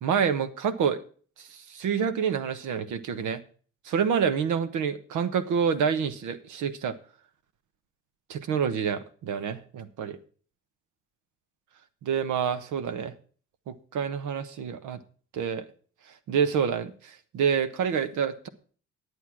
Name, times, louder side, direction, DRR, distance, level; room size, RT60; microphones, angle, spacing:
voice 1, 0.0-1.0 1.4-3.4 3.9-7.0 8.3-10.2 12.0-13.1 13.7-15.0 15.3-15.6 16.3-18.5, right 7 dB, 80° right, 11 dB, 1.1 m, -27 dB
11.0 x 8.0 x 6.0 m, 0.43 s
cardioid pair, 90°, 30 cm